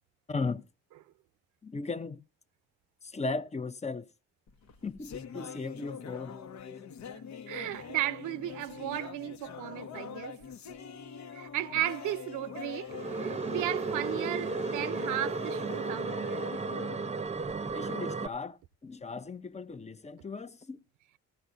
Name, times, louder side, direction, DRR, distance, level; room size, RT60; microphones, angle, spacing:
voice 1, 0.3-0.6 1.6-2.2 3.0-4.1 4.8-6.4 17.7-20.8, left 3 dB, 20° left, 0.8 m, -36 dB
sound 1, 4.5-17.9, left 7 dB, 65° left, 1.3 m, -44 dB
voice 2, 7.5-10.4 11.3-16.5, right 14 dB, 90° right, 0.7 m, -35 dB
sound 2, 12.9-18.3, right 4 dB, 20° right, 0.8 m, -34 dB
16.5 x 14.5 x 2.7 m
cardioid pair, 90°, 30 cm